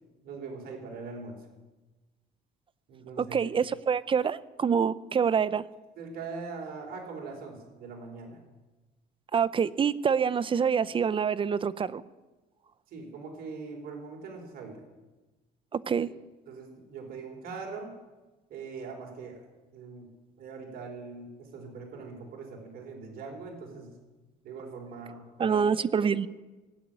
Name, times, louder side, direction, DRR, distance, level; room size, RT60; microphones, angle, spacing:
voice 1, 0.2-1.4 2.9-3.4 6.0-8.4 12.9-14.8 16.5-17.9 18.5-19.5 19.7-20.1 20.4-23.9 24.4-25.7 26.0-26.1, right 4 dB, 65° right, 1 dB, 4.2 m, -41 dB
voice 2, 3.2-5.6 9.3-12.0 15.7-16.1 25.4-26.3, right 6 dB, 30° right, 16 dB, 0.6 m, -26 dB
18.0 x 8.3 x 9.0 m, 1.2 s
cardioid pair, 110°, 17 cm